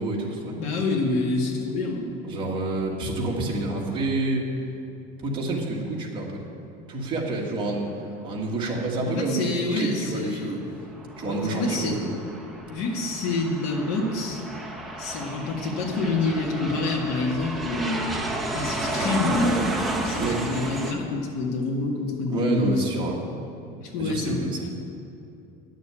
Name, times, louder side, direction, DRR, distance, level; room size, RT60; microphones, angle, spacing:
voice 1, 0.0-0.6 2.2-4.5 5.2-6.4 6.9-7.9 8.2-10.6 11.2-12.2 20.2-20.5 22.3-23.2 24.0-24.7, right 2 dB, 25° right, -3 dB, 1.8 m, -28 dB
voice 2, 0.5-2.1 9.0-10.6 11.2-12.0 12.7-14.4 15.0-18.1 18.5-19.8 20.0-22.7 23.8-24.7, left 3 dB, 75° left, -1 dB, 2.0 m, -27 dB
Aircraft, 10.7-20.9, right 1 dB, ahead, 0.8 m, -32 dB
10.5 x 6.7 x 9.0 m, 2.7 s
cardioid pair, 170°, 20 cm